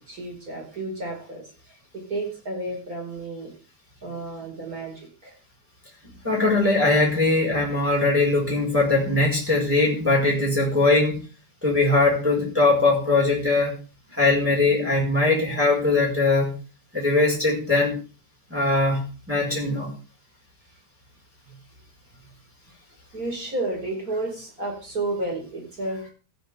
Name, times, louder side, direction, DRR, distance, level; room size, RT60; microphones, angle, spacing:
voice 1, 0.1-3.5 4.0-5.3 6.0-6.6 23.1-26.0, right 2 dB, 20° right, 1 dB, 5.1 m, -32 dB
voice 2, 6.2-11.2 11.6-13.8 14.1-16.5 16.9-18.0 18.5-19.9, left 2 dB, 5° right, -3 dB, 4.5 m, -21 dB
15.5 x 12.0 x 3.6 m, 0.34 s
omnidirectional pair, 4.6 m